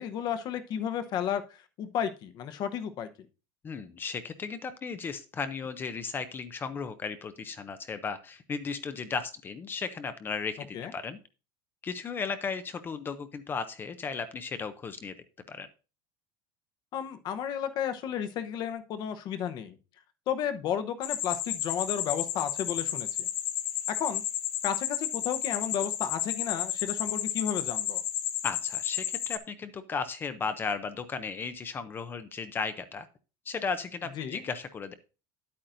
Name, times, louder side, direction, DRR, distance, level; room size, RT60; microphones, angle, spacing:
voice 1, 0.0-1.4 1.8-3.1 10.7-10.9 16.9-19.8 20.3-23.3 23.9-24.2 24.6-28.0 34.2-34.4, left 9 dB, 35° left, 10 dB, 0.9 m, -33 dB
voice 2, 3.6-11.2 11.8-15.2 15.5-15.7 28.4-33.1 33.5-34.9, left 5 dB, 20° left, 11 dB, 0.5 m, -35 dB
sound 1, 21.0-29.4, left 12 dB, 75° left, 1.2 m, -32 dB
10.5 x 8.6 x 2.6 m, 0.32 s
cardioid pair, 170°, 12 cm